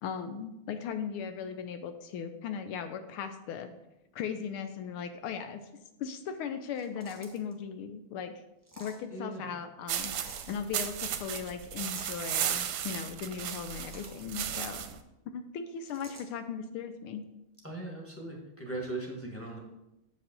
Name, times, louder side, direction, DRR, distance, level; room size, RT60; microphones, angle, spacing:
voice 1, 0.0-3.7 4.1-5.6 6.0-8.3 8.8-14.8 15.3-17.2, left 7 dB, 80° left, 8 dB, 1.5 m, -38 dB
sound 1, 6.8-7.5 8.6-9.0 10.0-10.5 11.8-12.2 13.5-14.3 15.9-16.3, right 1 dB, 10° right, 1.0 m, -51 dB
voice 2, 9.1-9.4 17.6-19.6, right 2 dB, 5° left, -1 dB, 1.3 m, -39 dB
sound 2, 9.9-15.0, right 9 dB, 70° right, 1.3 m, -35 dB
7.9 x 5.3 x 5.2 m, 0.91 s
omnidirectional pair, 2.4 m